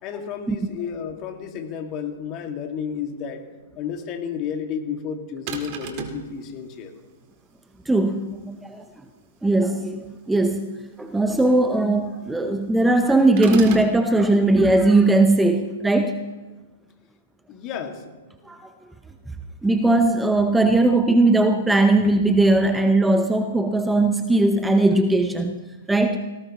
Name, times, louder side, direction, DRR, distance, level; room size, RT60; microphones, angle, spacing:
voice 1, 0.0-3.4 3.8-6.9 17.5-18.1, left 7 dB, 35° left, 4 dB, 2.2 m, -32 dB
sound 1, 5.5-6.3 13.4-13.9, right 7 dB, 45° right, 2.0 m, -32 dB
voice 2, 7.9-8.8 9.4-10.7 11.0-16.2 18.5-18.6 19.6-25.6 25.9-26.2, right 2 dB, 5° right, 7 dB, 0.8 m, -19 dB
18.0 x 17.5 x 3.1 m, 1.2 s
hypercardioid pair, 115°, 0 cm